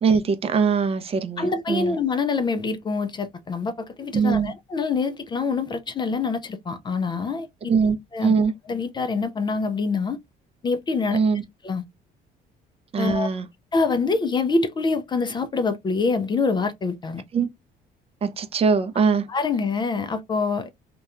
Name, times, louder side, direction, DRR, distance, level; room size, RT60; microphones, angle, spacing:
voice 1, 0.0-2.0 4.1-4.5 7.7-8.0 8.2-8.5 11.1-11.4 12.9-13.5 17.3-17.5 18.2-19.2, right 5 dB, 35° right, 0.5 m, -21 dB
voice 2, 1.4-7.5 8.1-8.3 8.7-10.2 10.6-11.2 11.6-11.8 13.0-13.3 13.7-17.2 19.3-20.7, left 4 dB, 25° left, 0.3 m, -25 dB
2.8 x 2.2 x 2.4 m
cardioid pair, 110°, 17 cm